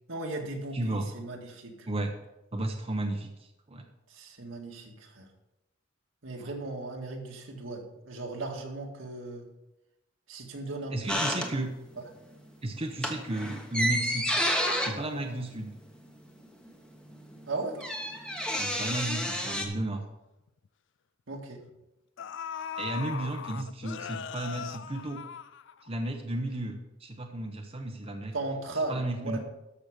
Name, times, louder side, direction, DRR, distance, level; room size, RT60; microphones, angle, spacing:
voice 1, 0.1-1.9 4.1-5.3 6.2-9.5 10.3-11.5 12.0-12.1 17.5-17.8 21.3-21.6 28.3-29.4, right 2 dB, 80° right, 1 dB, 2.0 m, -37 dB
voice 2, 0.7-1.1 1.9-2.1 2.5-3.8 6.4-6.5 10.9-11.7 12.6-14.4 14.8-15.7 18.5-20.0 22.8-25.2 25.8-28.3 28.9-29.4, right 1 dB, 30° right, 3 dB, 0.8 m, -33 dB
sound 1, 11.1-12.0 12.3-12.5 12.9-16.4 16.7-16.8 16.9-19.7, equal, 5° left, 1.1 m, -31 dB
sound 2, 20.5-20.7 21.7-21.8 22.2-26.1 26.4-26.5, left 7 dB, 65° left, 0.4 m, -39 dB
13.5 x 6.1 x 5.1 m, 0.96 s
head